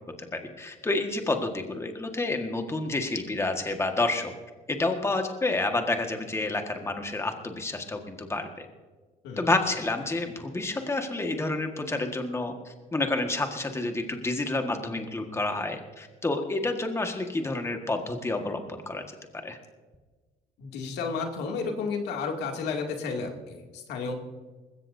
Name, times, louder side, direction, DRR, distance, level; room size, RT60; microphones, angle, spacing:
voice 1, 0.6-4.3 4.7-8.7 9.4-19.0 19.4-19.6, left 2 dB, 15° left, 4 dB, 1.7 m, -29 dB
voice 2, 20.6-24.1, left 4 dB, 80° left, 2 dB, 2.6 m, -32 dB
20.5 x 16.5 x 2.7 m, 1.3 s
cardioid pair, 110°, 17 cm